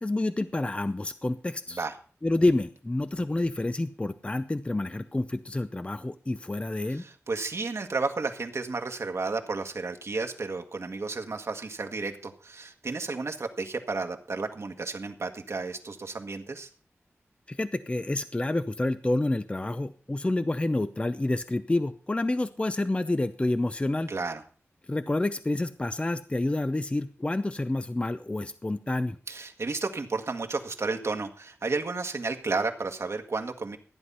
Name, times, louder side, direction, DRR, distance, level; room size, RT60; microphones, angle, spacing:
voice 1, 0.0-1.8 2.2-7.0 17.5-24.1 24.9-29.2, left 2 dB, 25° left, 12 dB, 0.6 m, -28 dB
voice 2, 6.8-16.7 24.1-24.4 29.3-33.8, right 3 dB, 70° right, 4 dB, 1.6 m, -32 dB
14.5 x 9.9 x 5.5 m, 0.41 s
wide cardioid pair, 90°, 5 cm